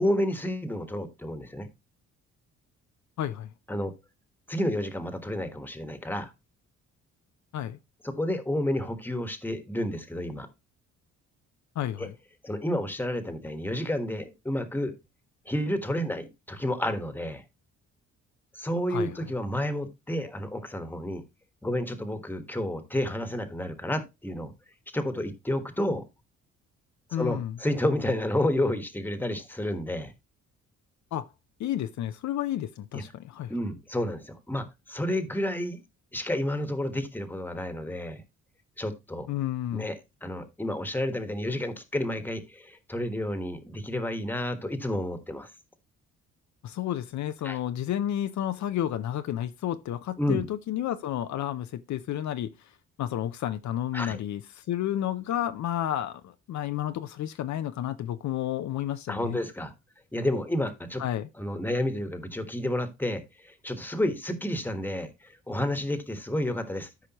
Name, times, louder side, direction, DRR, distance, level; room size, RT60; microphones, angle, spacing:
voice 1, 0.0-1.7 3.7-3.9 4.5-6.3 8.0-10.5 12.0-12.1 12.4-14.9 15.5-17.4 18.5-21.2 21.6-24.5 24.9-26.0 27.1-30.1 32.9-33.0 33.5-35.8 36.1-38.2 38.8-39.3 39.7-45.5 47.4-47.6 50.2-50.5 53.9-54.2 59.1-59.7 60.1-61.0 61.4-66.9, left 1 dB, 5° left, 1.4 m, -30 dB
voice 2, 3.2-3.5 7.5-7.8 11.8-12.1 18.9-19.2 27.1-27.6 31.1-31.3 31.6-33.5 39.3-39.9 46.6-52.5 53.0-59.4 61.0-61.3, left 11 dB, 65° left, 0.7 m, -31 dB
13.0 x 5.0 x 3.0 m
cardioid pair, 90°, 30 cm